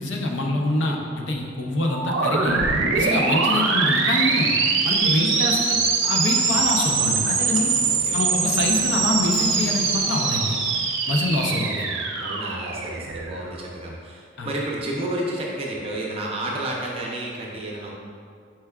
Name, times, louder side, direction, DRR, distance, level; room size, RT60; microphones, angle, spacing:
voice 1, 0.0-2.6 2.9-4.5 4.8-7.7 8.1-10.6 11.1-11.9 14.4-14.5, left 2 dB, 75° left, 0 dB, 0.6 m, -25 dB
sound 1, 1.8-13.5, right 4 dB, 85° right, 0.5 m, -23 dB
voice 2, 5.0-5.9 7.9-8.2 11.4-17.9, right 1 dB, 30° right, -3 dB, 0.6 m, -31 dB
Drum, 6.9-11.7, left 2 dB, 30° left, 0.4 m, -39 dB
4.6 x 4.4 x 2.3 m, 2.2 s
head